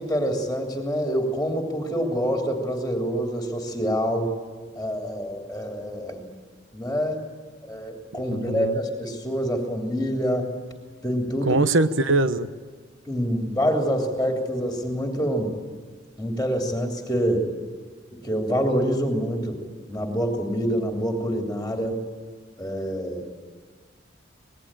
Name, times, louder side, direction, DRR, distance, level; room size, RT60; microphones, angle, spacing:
voice 1, 0.0-4.3 4.8-6.3 6.7-7.2 7.6-10.5 11.0-11.6 13.1-15.5 16.2-17.5 18.2-19.6 19.9-22.0 22.6-23.2, equal, 5° left, 2 dB, 3.1 m, -26 dB
voice 2, 8.1-8.8 11.4-12.5, right 2 dB, 85° right, 11 dB, 1.1 m, -22 dB
26.5 x 20.5 x 9.0 m, 1.5 s
head